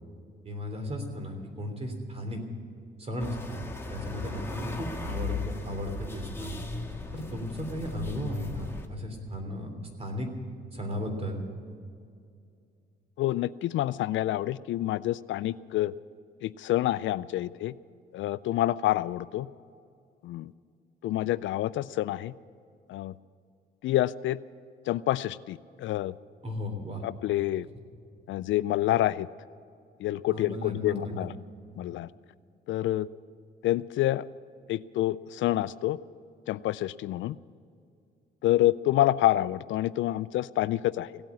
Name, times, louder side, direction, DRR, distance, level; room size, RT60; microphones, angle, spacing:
voice 1, 0.4-2.4 3.0-6.6 7.1-9.7 10.0-10.3 10.7-11.4 26.4-27.0 30.3-31.3, left 1 dB, 30° right, 4 dB, 3.2 m, -35 dB
sound 1, 3.2-8.9, left 3 dB, 10° left, 1.7 m, -37 dB
voice 2, 13.2-15.9 16.4-17.7 18.1-19.5 20.2-20.5 21.0-22.3 22.9-23.1 23.8-24.4 24.9-26.1 27.0-27.7 28.3-29.3 30.0-31.3 31.8-32.1 32.7-33.1 33.6-34.2 34.7-36.0 36.5-37.3 38.4-41.1, left 14 dB, 75° left, 18 dB, 0.4 m, -27 dB
17.0 x 8.9 x 9.5 m, 2.4 s
cardioid pair, 90°, 20 cm